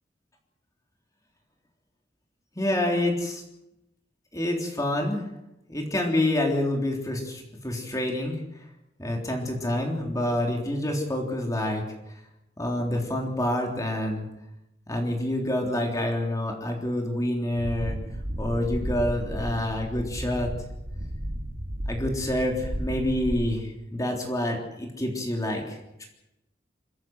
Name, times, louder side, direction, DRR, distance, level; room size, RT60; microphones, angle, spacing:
voice 1, 2.6-3.4 4.3-5.2 5.7-8.4 9.0-11.8 12.6-14.2 14.9-18.0 18.4-20.5 21.9-26.1, left 1 dB, 20° left, 1 dB, 3.6 m, -27 dB
sound 1, 17.6-23.5, equal, 60° right, 2.7 m, -33 dB
28.0 x 14.0 x 8.0 m, 0.88 s
head